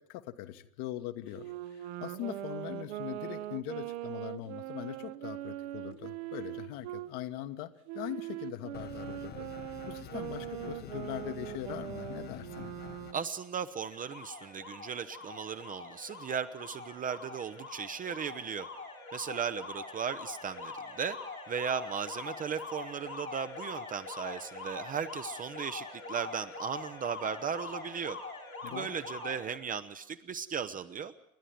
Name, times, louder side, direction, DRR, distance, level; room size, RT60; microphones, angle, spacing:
voice 1, 0.0-7.7 7.9-9.5 9.9-12.7 28.6-29.0, left 13 dB, 45° left, 10 dB, 1.3 m, -41 dB
Wind instrument woodwind instrument, 1.3-7.1 7.9-13.3, right 14 dB, 50° right, 1.0 m, -41 dB
sound 1, 8.7-13.1, left 10 dB, 25° left, 1.0 m, -48 dB
voice 2, 13.1-18.7 19.1-21.2 21.5-28.2 28.6-31.1, right 7 dB, 20° right, 11 dB, 0.7 m, -36 dB
Alarm, 13.9-29.6, left 3 dB, 90° left, 5.1 m, -44 dB
29.0 x 11.0 x 9.3 m, 0.82 s
figure-of-eight pair, 80°, 42 cm